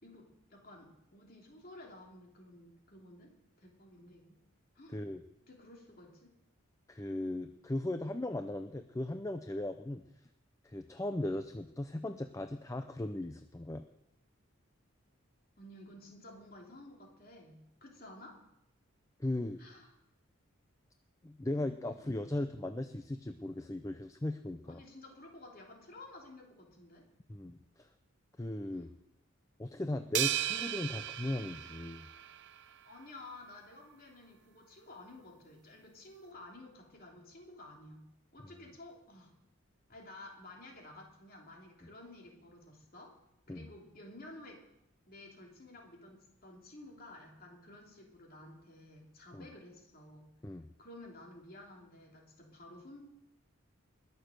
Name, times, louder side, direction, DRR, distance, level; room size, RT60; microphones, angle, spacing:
voice 1, 0.0-3.3 3.6-4.4 4.7-5.0 5.5-6.3 15.6-18.4 19.6-19.9 22.0-22.3 24.7-27.1 28.7-28.9 32.8-38.1 38.3-39.3 39.9-43.2 43.5-44.6 45.1-50.3 50.8-53.0, left 1 dB, 45° left, 0 dB, 3.1 m, -53 dB
voice 2, 6.9-10.0 10.6-13.9 19.2-19.6 21.2-24.8 27.3-27.9 28.4-28.9 29.6-32.1 43.5-43.7 49.3-49.5 50.4-50.7, left 1 dB, 15° left, 8 dB, 0.5 m, -37 dB
sound 1, 30.2-32.6, right 13 dB, 55° right, 0.6 m, -35 dB
20.5 x 6.9 x 6.4 m, 0.86 s
head